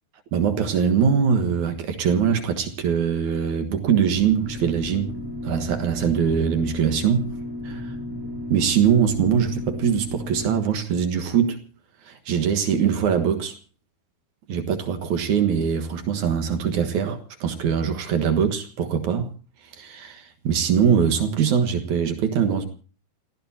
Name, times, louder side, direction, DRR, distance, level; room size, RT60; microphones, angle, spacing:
voice 1, 0.3-5.2 5.4-7.4 7.6-7.9 8.5-11.6 12.1-13.5 14.5-19.3 19.8-22.7, right 7 dB, 60° right, 2.5 m, -22 dB
sound 1, 4.2-10.5, left 1 dB, 5° right, 3.9 m, -33 dB
28.5 x 15.5 x 2.8 m
omnidirectional pair, 4.4 m